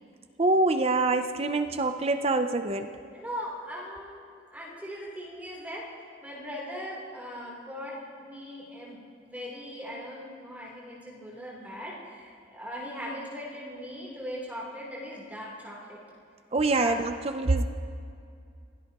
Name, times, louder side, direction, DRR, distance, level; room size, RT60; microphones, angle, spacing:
voice 1, 0.4-2.9 16.5-17.6, right 2 dB, 35° right, 8 dB, 0.5 m, -25 dB
voice 2, 2.9-16.0 16.7-16.9, equal, 10° right, -5 dB, 3.4 m, -39 dB
25.5 x 16.5 x 3.0 m, 2.3 s
head